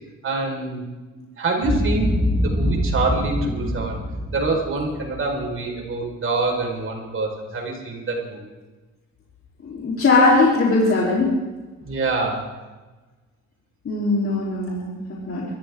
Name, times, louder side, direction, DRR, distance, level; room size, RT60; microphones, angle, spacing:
voice 1, 0.2-0.8 1.1-4.0 4.3-8.5 11.8-12.5, right 3 dB, 45° right, 0 dB, 5.2 m, -26 dB
Boom, 1.6-5.9, equal, 5° right, 2.0 m, -25 dB
voice 2, 9.6-11.3 13.8-15.5, left 3 dB, 45° left, -5 dB, 4.0 m, -20 dB
23.0 x 14.0 x 3.8 m, 1.2 s
cardioid pair, 90°, 30 cm